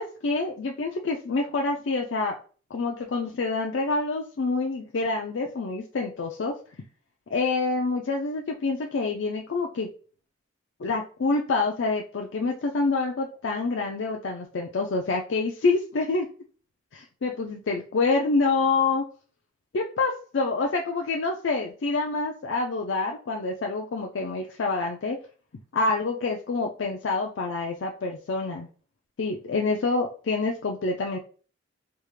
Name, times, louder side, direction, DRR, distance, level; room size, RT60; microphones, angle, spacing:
voice 1, 0.0-2.4 2.7-6.6 7.3-9.9 10.8-16.3 16.9-19.1 19.7-25.2 25.7-28.7 29.2-31.2, left 3 dB, 70° left, 1 dB, 0.5 m, -27 dB
3.4 x 2.4 x 3.1 m, 0.38 s
head